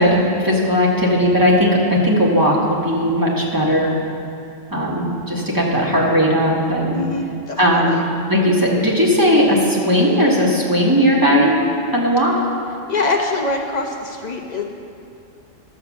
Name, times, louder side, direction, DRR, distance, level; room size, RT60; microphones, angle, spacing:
voice 1, 0.0-3.9 4.7-7.0 7.6-11.5 11.9-12.3, equal, 15° right, -4 dB, 1.6 m, -17 dB
voice 2, 6.9-8.0 12.3-12.4 12.9-14.6, left 3 dB, 35° left, 1 dB, 1.2 m, -24 dB
12.0 x 6.8 x 7.3 m, 2.5 s
omnidirectional pair, 1.4 m